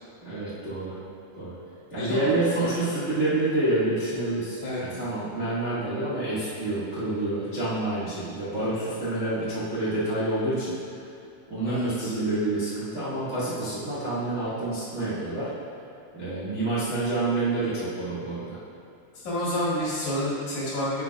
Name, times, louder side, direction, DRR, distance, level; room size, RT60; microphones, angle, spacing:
voice 1, 0.2-1.0 1.4-1.6 1.9-10.7 11.5-15.5 16.1-18.6, right 2 dB, 80° right, -11 dB, 0.6 m, -28 dB
voice 2, 2.0-2.7 4.6-4.8 11.6-12.1 19.2-21.0, left 1 dB, 55° left, -8 dB, 3.0 m, -29 dB
10.5 x 7.6 x 2.4 m, 2.7 s
omnidirectional pair, 4.8 m